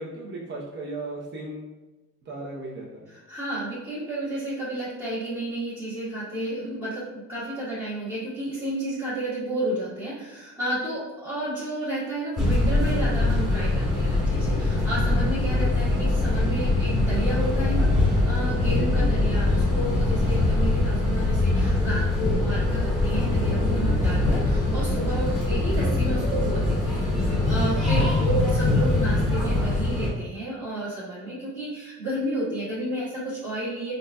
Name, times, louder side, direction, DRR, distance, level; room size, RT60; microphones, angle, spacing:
voice 1, 0.0-1.7 2.2-3.1 15.5-15.8 18.7-19.4 27.7-28.1, right 2 dB, 35° right, -5 dB, 0.8 m, -36 dB
voice 2, 3.1-33.9, right 1 dB, 15° right, -14 dB, 1.3 m, -31 dB
sound 1, 12.4-30.1, left 2 dB, ahead, 1.4 m, -23 dB
3.8 x 2.6 x 2.3 m, 1.1 s
cardioid pair, 125°, 30 cm